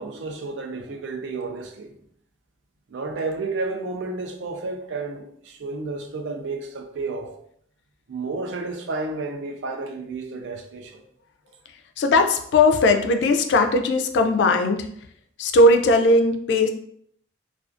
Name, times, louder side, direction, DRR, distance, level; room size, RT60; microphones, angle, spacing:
voice 1, 0.0-2.0 2.9-7.4 8.1-11.0, right 3 dB, 75° right, 0.4 m, -31 dB
voice 2, 12.0-14.9 15.4-16.7, left 2 dB, 70° left, 0.3 m, -18 dB
2.4 x 2.3 x 2.4 m
head